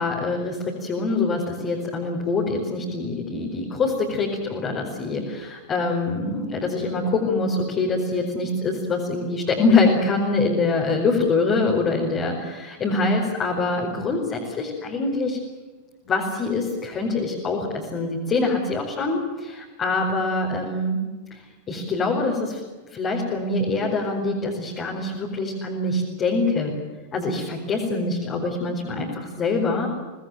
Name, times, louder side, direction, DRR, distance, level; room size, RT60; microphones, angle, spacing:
voice 1, 0.0-15.4 16.0-21.0 21.3-21.4 21.7-22.6 22.9-26.8 27.1-29.9, left 3 dB, 30° left, -2 dB, 4.8 m, -24 dB
25.0 x 19.5 x 9.2 m, 1.3 s
figure-of-eight pair, 90°, 0 cm